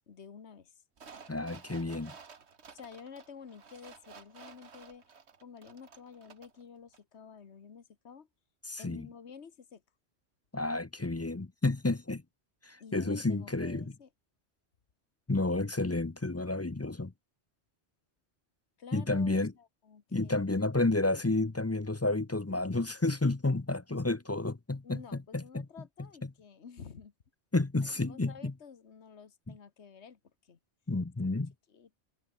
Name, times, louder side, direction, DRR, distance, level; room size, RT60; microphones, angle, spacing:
voice 1, 0.1-0.8 2.7-8.3 8.8-9.8 12.8-14.1 18.8-20.4 24.8-27.1 27.8-30.6 31.7-32.0, left 6 dB, 75° left, 1.7 m, -51 dB
sound 1, 1.0-6.6 6.9-7.0, right 5 dB, 75° right, 1.8 m, -53 dB
voice 2, 1.3-2.1 8.7-9.1 10.5-12.2 12.6-13.9 15.3-17.1 18.9-19.5 20.1-25.0 25.3-25.7 27.5-28.5 30.9-31.5, left 2 dB, 20° left, 0.5 m, -30 dB
omnidirectional pair, 1.2 m